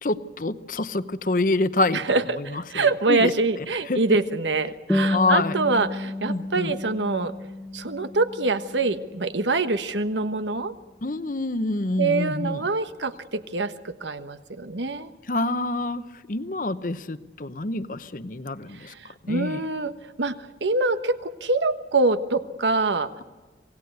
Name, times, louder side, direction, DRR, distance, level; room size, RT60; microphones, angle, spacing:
voice 1, 0.0-3.3 3.6-4.0 5.1-5.5 6.3-6.7 11.0-12.7 15.3-16.0 16.3-18.9 19.2-19.6, left 2 dB, 45° left, 13 dB, 0.9 m, -27 dB
voice 2, 1.9-7.3 7.7-10.7 12.0-15.1 18.8-19.9 20.2-20.4 20.6-23.1, right 3 dB, 85° right, 10 dB, 1.3 m, -25 dB
sound 1, 4.9-9.9, left 1 dB, 5° left, 1.1 m, -31 dB
26.5 x 18.0 x 8.0 m, 1.3 s
head